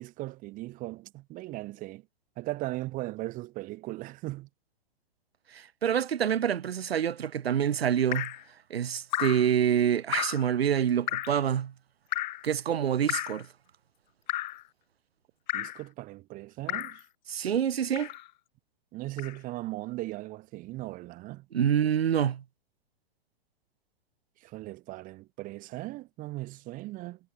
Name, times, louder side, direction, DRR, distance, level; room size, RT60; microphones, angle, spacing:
voice 1, 0.0-2.0 2.4-4.5 15.5-17.0 18.9-21.5 24.4-27.2, right 19 dB, 25° right, 6.9 m, -38 dB
voice 2, 5.5-8.3 8.7-11.7 12.4-13.5 17.3-18.1 21.5-22.4, right 9 dB, 80° right, 4.6 m, -26 dB
Drip, 8.1-8.4 9.1-9.5 10.1-10.5 11.1-11.4 12.1-12.5 13.1-13.4 14.3-14.6 15.5-15.8 16.7-17.0 17.9-18.3 19.2-19.4, left 16 dB, 45° left, 4.0 m, -33 dB
hypercardioid pair, 155°, 30 cm